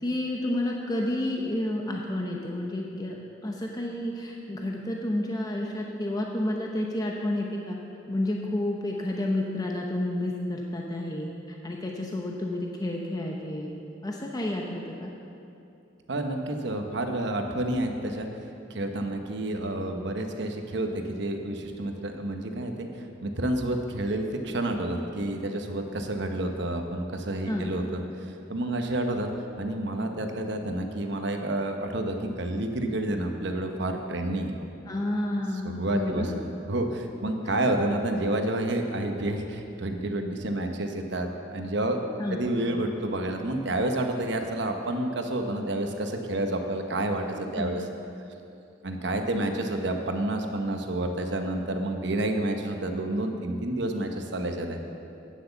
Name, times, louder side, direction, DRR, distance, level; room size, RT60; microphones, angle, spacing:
voice 1, 0.0-3.2 3.4-7.8 8.1-11.3 11.6-13.7 14.0-15.1 27.5-27.8 34.9-36.4 42.2-42.4 47.6-47.8, left 1 dB, 20° left, -1 dB, 0.7 m, -30 dB
voice 2, 16.1-18.3 18.7-28.0 28.5-29.3 29.6-34.6 35.6-36.3 36.7-42.0 42.3-47.9 48.8-54.8, right 1 dB, 65° right, 4 dB, 1.0 m, -29 dB
9.3 x 7.9 x 7.0 m, 2.7 s
head